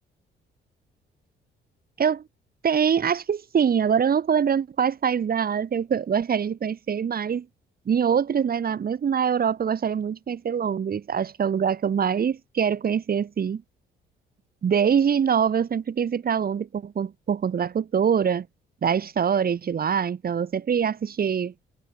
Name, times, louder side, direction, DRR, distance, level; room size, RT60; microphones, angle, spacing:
voice 1, 2.6-7.5 7.8-13.6 14.6-18.5 18.8-21.5, right 7 dB, 50° right, 3.2 m, -24 dB
cardioid pair, 90°, 20 cm